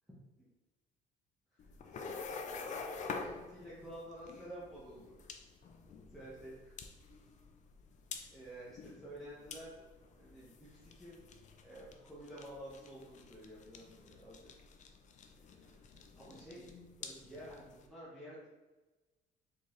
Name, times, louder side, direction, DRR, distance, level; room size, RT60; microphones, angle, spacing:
voice 1, 1.5-5.1 6.1-6.7 8.3-9.8 10.2-11.2 11.6-14.5 15.5-15.8 16.1-16.7 17.0-18.5, right 1 dB, ahead, -9 dB, 1.3 m, -51 dB
sound 1, 1.6-17.9, left 4 dB, 45° left, 0.5 m, -48 dB
4.2 x 3.8 x 3.2 m, 1.1 s
cardioid pair, 110°, 17 cm